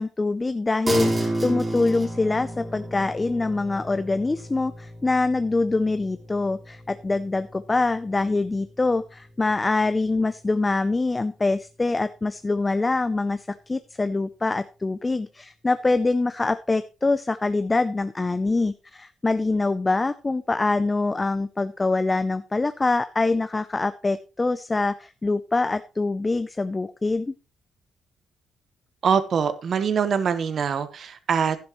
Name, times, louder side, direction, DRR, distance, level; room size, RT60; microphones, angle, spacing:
voice 1, 0.0-27.3, left 3 dB, 20° left, 0.5 m, -24 dB
sound 1, 0.9-10.6, right 1 dB, 20° right, 3.3 m, -33 dB
voice 2, 29.0-31.6, right 6 dB, 55° right, 1.1 m, -23 dB
11.0 x 10.5 x 3.0 m
cardioid pair, 110°, 0 cm